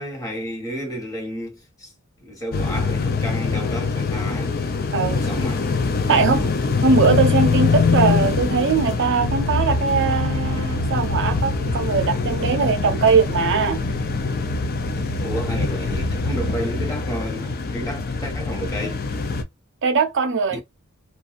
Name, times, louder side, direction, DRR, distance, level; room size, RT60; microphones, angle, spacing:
voice 1, 0.0-1.9 2.2-4.5 5.1-5.7 6.1-6.3 15.2-19.0 20.5-20.6, equal, 15° left, 1.0 m, -31 dB
sound 1, 2.5-19.4, left 4 dB, 45° left, 0.5 m, -23 dB
voice 2, 4.9-5.2 6.1-6.5 6.8-13.8 19.8-20.6, right 5 dB, 60° right, 0.6 m, -20 dB
2.6 x 2.3 x 2.4 m
head